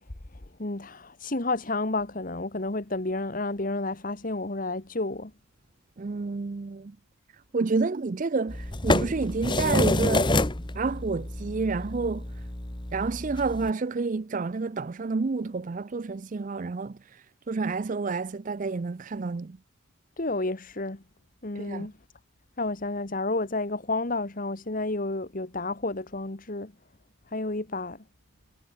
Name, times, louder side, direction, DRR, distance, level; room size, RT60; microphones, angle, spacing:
voice 1, 0.6-5.3 20.2-21.0 21.4-21.9 22.6-26.7 27.3-28.0, left 2 dB, 40° left, 1.4 m, -30 dB
voice 2, 6.0-6.9 7.5-10.3 10.7-12.2 12.9-19.6 21.6-21.9, right 4 dB, 35° right, 0.4 m, -29 dB
sound 1, 8.5-13.7, left 2 dB, 20° left, 1.2 m, -28 dB
head